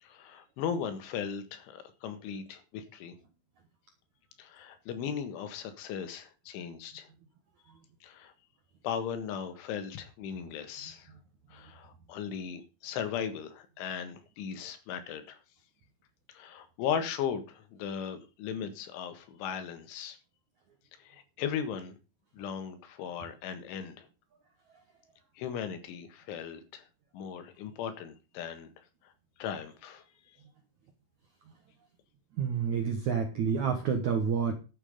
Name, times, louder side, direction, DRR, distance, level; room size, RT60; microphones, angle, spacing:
voice 1, 0.0-3.1 4.4-7.1 8.0-8.3 8.8-11.1 11.5-15.4 16.3-20.2 21.0-22.0 22.3-24.1 25.4-26.9 27.1-28.7 29.4-30.0, left 8 dB, 80° left, 10 dB, 4.0 m, -37 dB
voice 2, 32.4-34.5, right 6 dB, 70° right, 5 dB, 1.8 m, -28 dB
12.0 x 8.4 x 5.4 m, 0.32 s
omnidirectional pair, 5.4 m